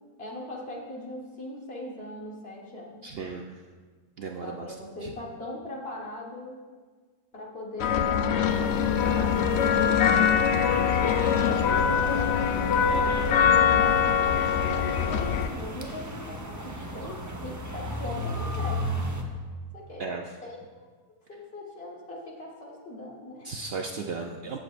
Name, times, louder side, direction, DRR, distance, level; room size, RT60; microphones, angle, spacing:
voice 1, 0.2-3.0 4.4-6.6 7.3-10.0 10.8-12.6 12.9-18.8 19.7-20.2 20.4-20.8 21.3-23.5, left 1 dB, 40° left, -3 dB, 1.6 m, -40 dB
voice 2, 3.0-3.5 4.2-4.7 5.0-5.1 20.0-20.3 23.4-24.6, right 4 dB, 75° right, 2 dB, 0.5 m, -35 dB
sound 1, 7.8-15.5, left 7 dB, 75° left, 0.6 m, -23 dB
sound 2, 8.5-19.2, equal, 25° right, 0.4 m, -36 dB
16.0 x 7.2 x 2.5 m, 1.5 s
omnidirectional pair, 1.7 m